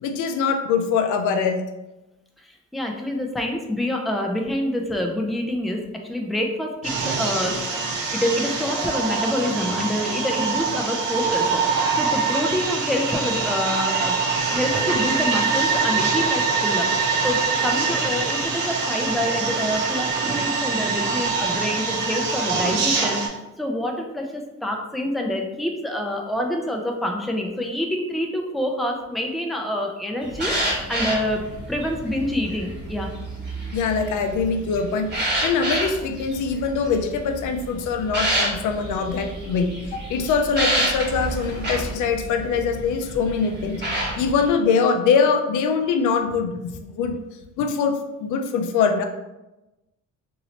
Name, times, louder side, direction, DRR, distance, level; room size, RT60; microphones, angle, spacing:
voice 1, 0.0-1.6 33.7-47.2 47.6-49.1, left 5 dB, 80° left, 6 dB, 0.5 m, -23 dB
voice 2, 2.4-7.6 8.1-14.2 14.5-16.9 17.2-23.2 23.6-31.4 31.7-33.1, left 1 dB, ahead, 1 dB, 0.4 m, -27 dB
sound 1, 6.8-23.3, right 4 dB, 80° right, 0.8 m, -24 dB
sound 2, 30.2-44.5, right 1 dB, 35° right, 1.2 m, -29 dB
3.0 x 2.6 x 2.8 m, 0.99 s
cardioid pair, 90°, 30 cm